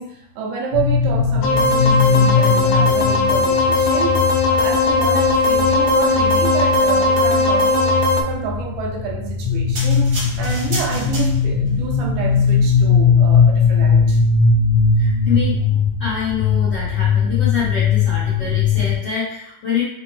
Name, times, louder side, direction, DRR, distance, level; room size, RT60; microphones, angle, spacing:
voice 1, 0.0-14.2, right 6 dB, 80° right, -1 dB, 2.3 m, -28 dB
sound 1, 0.7-18.9, left 5 dB, 50° left, 1.2 m, -19 dB
sound 2, 1.4-8.2, left 2 dB, 85° left, 2.2 m, -17 dB
sound 3, 9.8-11.7 12.4-12.5, right 1 dB, 50° right, 1.1 m, -31 dB
voice 2, 15.0-19.8, left 6 dB, 70° left, -10 dB, 1.1 m, -26 dB
5.8 x 2.1 x 3.1 m, 0.74 s
omnidirectional pair, 3.9 m